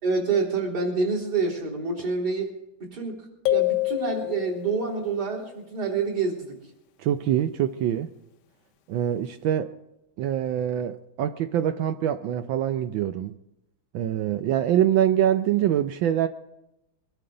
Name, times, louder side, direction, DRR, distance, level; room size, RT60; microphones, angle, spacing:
voice 1, 0.0-2.5 2.8-6.6, right 4 dB, 50° right, 4.2 m, -27 dB
sound 1, 3.5-4.9, left 18 dB, 65° left, 1.2 m, -26 dB
voice 2, 7.0-8.1 8.9-9.7 10.2-13.4 13.9-16.3, right 10 dB, 80° right, 1.4 m, -24 dB
23.0 x 12.5 x 3.9 m
omnidirectional pair, 2.2 m